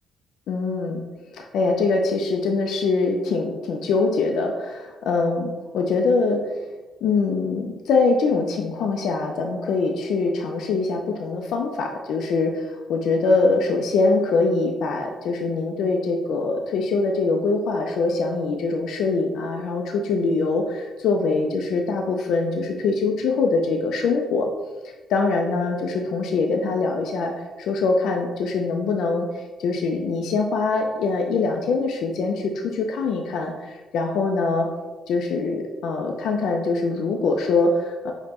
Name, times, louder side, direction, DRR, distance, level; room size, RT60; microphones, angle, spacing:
voice 1, 0.5-1.0 1.3-6.4 7.0-24.5 24.8-34.7 35.1-38.1, left 3 dB, 80° left, 2 dB, 0.3 m, -23 dB
5.0 x 2.1 x 2.9 m, 1.3 s
cardioid pair, 90°, 0 cm